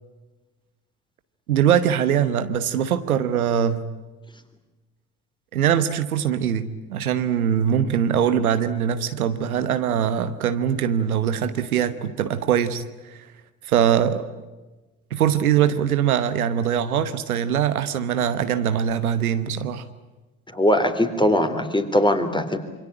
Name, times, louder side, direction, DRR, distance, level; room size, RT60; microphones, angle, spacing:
voice 1, 1.5-3.8 5.5-13.2 13.6-14.3 15.1-19.8, right 9 dB, 85° right, 11 dB, 1.1 m, -22 dB
voice 2, 20.5-22.6, equal, 10° left, 7 dB, 3.8 m, -20 dB
26.5 x 23.5 x 8.7 m, 1.2 s
hypercardioid pair, 50°, 42 cm